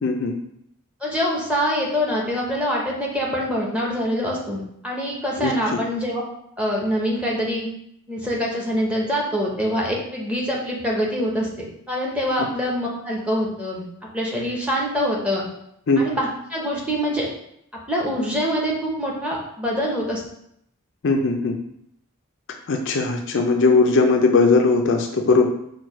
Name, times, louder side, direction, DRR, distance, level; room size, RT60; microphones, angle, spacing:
voice 1, 0.0-0.3 5.4-5.8 15.9-16.0 21.0-21.6 22.7-25.5, left 3 dB, 55° left, 3 dB, 0.4 m, -19 dB
voice 2, 1.0-6.2 6.6-7.7 8.1-11.5 11.9-13.8 14.1-15.5 16.0-17.3 17.9-20.2, equal, 5° right, -3 dB, 0.8 m, -24 dB
4.6 x 2.3 x 4.7 m, 0.74 s
head